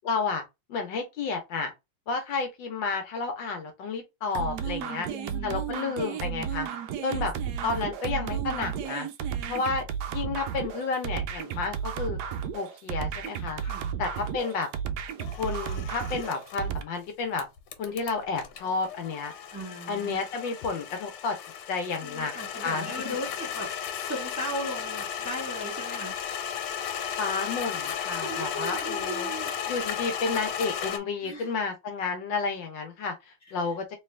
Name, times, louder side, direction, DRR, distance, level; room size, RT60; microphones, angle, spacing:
voice 1, 0.0-0.4 0.7-1.7 2.1-5.1 5.4-6.7 7.0-7.3 7.6-9.1 9.5-12.2 12.5-13.6 14.0-14.7 15.4-17.5 17.8-19.3 19.9-21.4 21.7-22.3 22.6-23.1 27.2-29.3 29.7-33.8, left 4 dB, 70° left, 1.3 m, -31 dB
sound 1, 4.3-16.8, right 8 dB, 90° right, 0.8 m, -33 dB
voice 2, 4.8-5.6 13.6-13.9 19.5-20.3 22.0-26.1 28.2-29.5 31.2-31.6 33.4-33.7, equal, 10° right, 0.9 m, -37 dB
sound 2, 15.2-16.6 17.4-31.0, left 8 dB, 90° left, 1.7 m, -35 dB
3.3 x 3.0 x 3.2 m
omnidirectional pair, 2.3 m